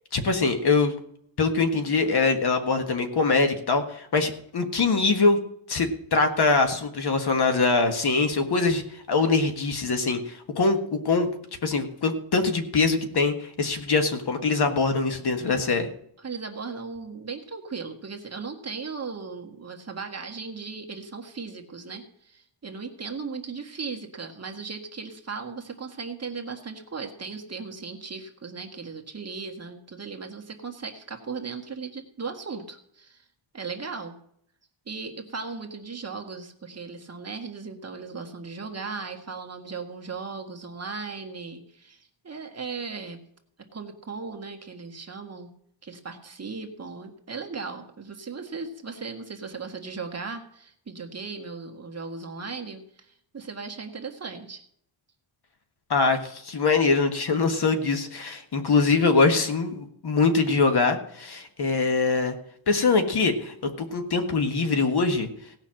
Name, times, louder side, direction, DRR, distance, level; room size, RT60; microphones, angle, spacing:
voice 1, 0.1-0.9 1.4-5.4 5.7-11.3 11.6-15.9 55.9-62.3 62.7-65.3, left 4 dB, 50° left, 6 dB, 1.6 m, -23 dB
voice 2, 16.2-33.3 33.5-34.2 34.9-43.2 43.7-45.5 45.8-54.6, right 4 dB, 30° right, 3 dB, 1.5 m, -37 dB
17.0 x 5.8 x 7.6 m, 0.70 s
wide cardioid pair, 155°, 48 cm